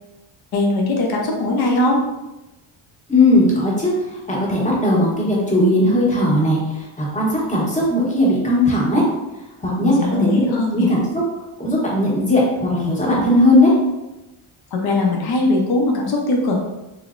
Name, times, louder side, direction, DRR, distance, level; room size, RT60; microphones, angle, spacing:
voice 1, 0.5-2.0 9.8-10.9 14.7-16.6, left 2 dB, 50° left, 0 dB, 0.7 m, -20 dB
voice 2, 3.1-9.1 9.6-10.3 10.7-11.2 11.6-13.7, left 1 dB, 15° left, -4 dB, 1.0 m, -18 dB
4.1 x 3.1 x 2.5 m, 1.0 s
cardioid pair, 150°, 49 cm